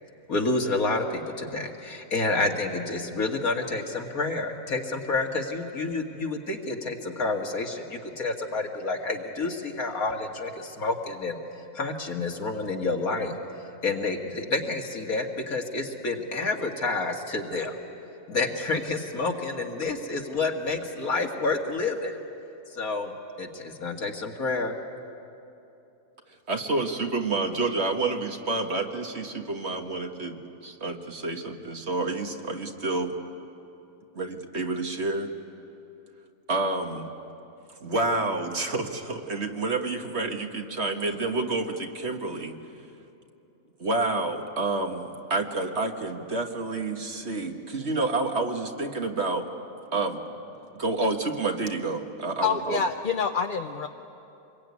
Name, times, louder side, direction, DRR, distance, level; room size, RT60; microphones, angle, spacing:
voice 1, 0.3-11.4 11.7-13.3 13.8-17.8 18.3-22.2 22.7-23.1 23.4-24.8, left 3 dB, 80° left, 2 dB, 2.5 m, -29 dB
voice 2, 26.5-33.2 34.1-35.3 36.5-37.1 37.8-42.5 43.8-49.5 49.9-50.2 50.7-52.8, right 3 dB, 50° right, 4 dB, 1.8 m, -29 dB
voice 3, 52.4-53.9, left 5 dB, 45° left, 4 dB, 0.8 m, -26 dB
26.5 x 22.0 x 9.6 m, 2.8 s
omnidirectional pair, 1.5 m